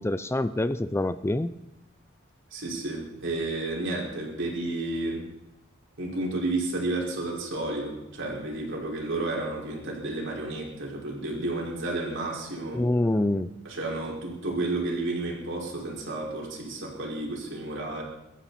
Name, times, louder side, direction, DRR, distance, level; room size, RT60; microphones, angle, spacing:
voice 1, 0.0-1.5 12.7-13.5, left 1 dB, 15° left, 13 dB, 0.4 m, -26 dB
voice 2, 2.5-5.2 6.0-12.8 13.6-18.0, right 2 dB, 65° right, -2 dB, 5.2 m, -31 dB
24.0 x 14.0 x 4.2 m, 0.96 s
head